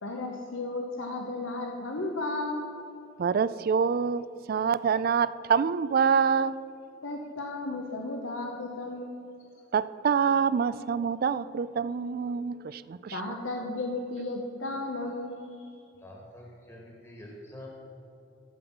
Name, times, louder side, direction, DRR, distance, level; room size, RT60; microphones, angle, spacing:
voice 1, 0.0-2.7 7.0-9.2 13.1-15.7, left 2 dB, 80° left, 2 dB, 0.9 m, -34 dB
voice 2, 3.2-6.6 9.7-13.2, right 6 dB, 50° right, 16 dB, 0.3 m, -26 dB
voice 3, 15.7-17.7, left 1 dB, 15° left, -2 dB, 1.5 m, -47 dB
14.0 x 5.5 x 7.1 m, 2.7 s
head